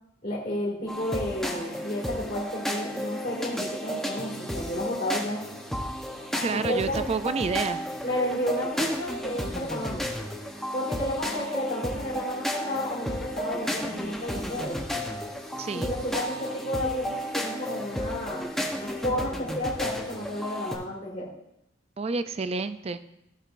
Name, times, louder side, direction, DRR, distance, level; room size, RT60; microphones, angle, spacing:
voice 1, 0.2-5.4 6.5-7.1 8.0-10.2 10.7-14.8 15.7-18.5 18.7-21.3, left 1 dB, 45° left, -9 dB, 2.2 m, -32 dB
sound 1, 0.9-20.7, equal, ahead, 0.9 m, -33 dB
voice 2, 6.4-7.8 15.6-15.9 22.0-23.0, right 4 dB, 30° right, 12 dB, 0.4 m, -29 dB
15.0 x 6.4 x 2.5 m, 0.82 s
head